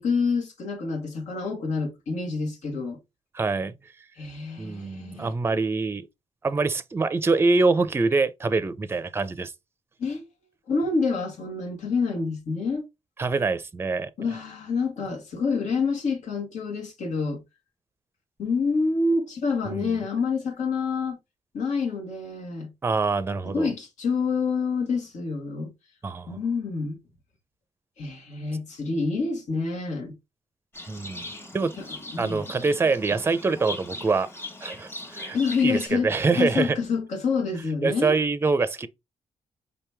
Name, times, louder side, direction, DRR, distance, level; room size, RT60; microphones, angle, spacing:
voice 1, 0.0-3.0 4.2-5.3 10.0-10.3 10.7-12.9 14.2-17.4 18.4-21.2 21.5-22.7 23.4-25.7 26.3-27.0 28.0-30.1 31.8-31.9 32.1-32.4 35.3-38.2, left 4 dB, 85° left, 1.6 m, -27 dB
voice 2, 3.3-3.7 4.6-6.1 6.4-9.5 13.2-14.1 19.7-20.0 22.8-23.7 26.0-26.4 30.9-31.3 31.5-31.7 32.2-34.3 34.6-35.4 35.6-36.8 37.8-38.9, right 3 dB, 20° right, 0.5 m, -25 dB
Livestock farm animals working animals, 30.7-35.9, left 2 dB, 20° left, 1.3 m, -39 dB
5.2 x 3.0 x 3.4 m
cardioid pair, 115°, 12 cm